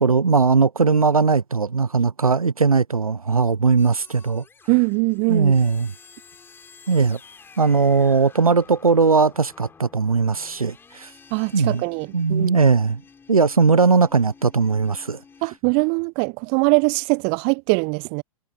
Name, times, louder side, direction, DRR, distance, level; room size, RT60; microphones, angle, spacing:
voice 1, 0.0-4.4 5.3-5.9 6.9-7.2 7.6-11.1 11.5-11.8 12.1-13.0 13.3-15.2, right 4 dB, 80° right, 0.7 m, -19 dB
sound 1, 3.8-15.6, left 5 dB, 10° left, 4.6 m, -50 dB
voice 2, 4.7-5.5 11.3-12.6 15.4-18.2, right 40 dB or more, 30° right, 0.5 m, -22 dB
figure-of-eight pair, 105°, 18 cm